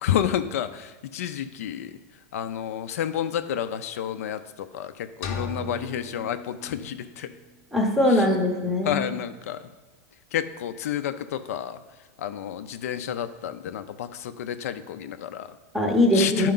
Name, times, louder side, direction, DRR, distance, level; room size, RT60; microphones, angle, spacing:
voice 1, 0.0-1.9 2.3-7.3 8.1-8.3 8.8-9.6 10.3-11.8 12.2-15.6 16.1-16.5, left 10 dB, 75° left, 11 dB, 0.4 m, -30 dB
sound 1, 5.2-7.2, left 3 dB, 30° left, 0.7 m, -36 dB
voice 2, 7.7-9.0 15.7-16.5, left 1 dB, ahead, 2 dB, 0.7 m, -21 dB
10.5 x 4.6 x 3.8 m, 1.3 s
supercardioid pair, 180°, 8 cm